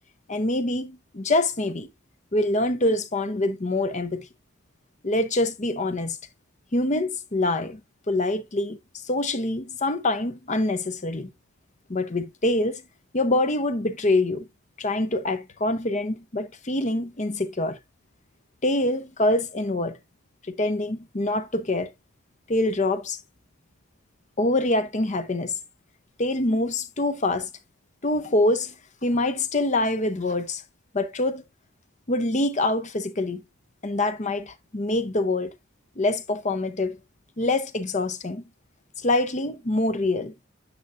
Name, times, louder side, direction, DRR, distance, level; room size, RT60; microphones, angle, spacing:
voice 1, 0.3-1.9 2.3-4.3 5.0-6.2 6.7-7.8 8.1-11.3 11.9-12.8 13.1-14.5 14.8-17.8 18.6-19.9 20.6-21.9 22.5-23.2 24.4-25.5 26.2-27.5 28.0-28.7 29.0-30.6 30.9-31.4 32.1-33.4 33.8-35.5 36.0-37.0 37.4-38.4 39.0-40.3, left 2 dB, 35° left, 0.7 m, -25 dB
9.9 x 5.5 x 2.5 m
head